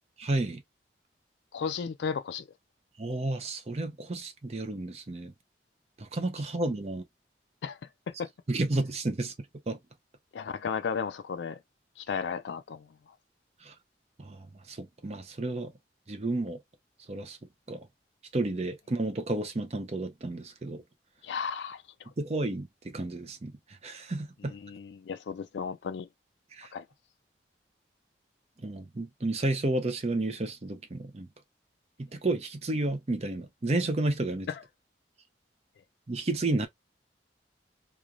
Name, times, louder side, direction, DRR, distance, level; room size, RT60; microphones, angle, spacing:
voice 1, 0.2-0.6 3.0-5.3 6.0-7.0 8.5-9.3 9.7-9.8 13.6-13.7 14.2-15.7 16.1-16.6 17.1-17.4 17.7-17.9 18.3-20.8 22.2-23.5 23.8-24.5 26.5-26.7 28.6-31.3 32.0-34.5 36.1-36.7, right 2 dB, 35° right, 0.5 m, -31 dB
voice 2, 1.5-2.4 7.6-7.8 8.1-8.3 10.3-11.6 12.0-12.9 21.2-21.8 24.4-26.1 26.7-26.8 34.5-34.6, left 6 dB, 75° left, 0.3 m, -34 dB
3.1 x 2.3 x 2.4 m
head